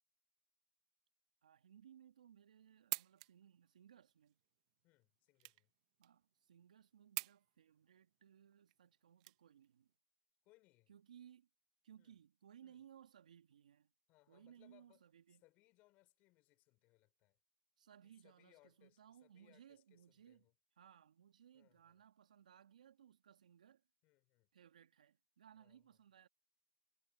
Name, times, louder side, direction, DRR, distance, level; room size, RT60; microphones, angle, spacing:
voice 1, 1.4-4.4 6.0-9.9 10.9-11.5 11.8-13.9 14.3-15.4 17.8-20.5 20.8-23.8 24.5-26.3, right 9 dB, 80° right, 1.9 m, -63 dB
sound 1, 2.6-9.9, right 23 dB, 55° right, 0.9 m, -49 dB
voice 2, 4.8-5.7 10.4-10.9 12.0-12.1 12.6-12.8 14.1-15.0 15.3-17.4 18.0-20.5 21.5-22.0 24.0-24.5 25.6-25.8, left 20 dB, 45° left, 5.7 m, -72 dB
hypercardioid pair, 105°, 4 cm